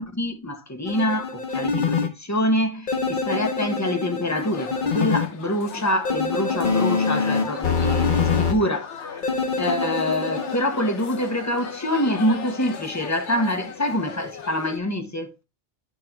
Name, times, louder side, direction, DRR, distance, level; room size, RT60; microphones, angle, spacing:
voice 1, 0.0-15.3, left 1 dB, 15° left, 0.8 m, -26 dB
sound 1, 0.9-2.1 2.9-5.3 6.1-8.5 9.2-10.6, left 5 dB, 45° left, 1.2 m, -24 dB
sound 2, 4.3-14.8, left 6 dB, 90° left, 1.3 m, -38 dB
9.1 x 3.8 x 4.4 m
omnidirectional pair, 1.2 m